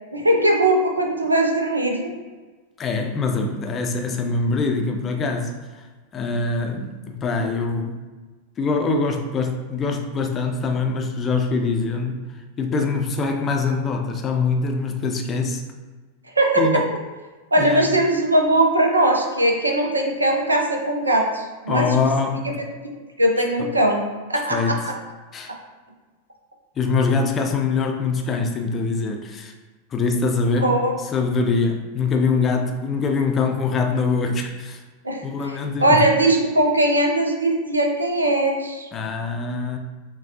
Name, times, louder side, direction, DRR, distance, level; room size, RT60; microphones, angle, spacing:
voice 1, 0.1-2.1 16.4-16.8 17.5-21.9 23.2-24.0 24.3-24.9 30.6-30.9 35.0-35.2 35.8-38.9, right 1 dB, 80° right, 2 dB, 0.6 m, -20 dB
voice 2, 2.8-5.8 6.1-8.0 8.6-12.2 12.6-15.6 16.6-16.9 17.6-17.9 21.7-22.6 24.5-24.9 25.3-25.5 26.8-29.5 29.9-34.8 35.2-36.0 38.9-39.8, left 4 dB, 25° left, 3 dB, 0.5 m, -23 dB
6.1 x 2.3 x 2.8 m, 1.3 s
figure-of-eight pair, 90°, 0 cm